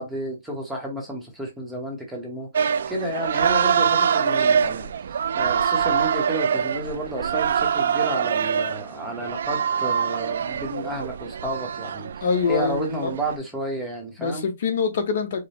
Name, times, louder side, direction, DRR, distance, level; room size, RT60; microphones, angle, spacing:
voice 1, 0.0-4.9 5.4-14.4, right 1 dB, 5° right, 1.0 m, -31 dB
sound 1, 2.5-13.4, right 7 dB, 60° right, 0.3 m, -24 dB
voice 2, 12.2-13.1 14.2-15.5, left 5 dB, 45° left, 1.1 m, -25 dB
5.0 x 2.2 x 4.3 m
hypercardioid pair, 175°, 0 cm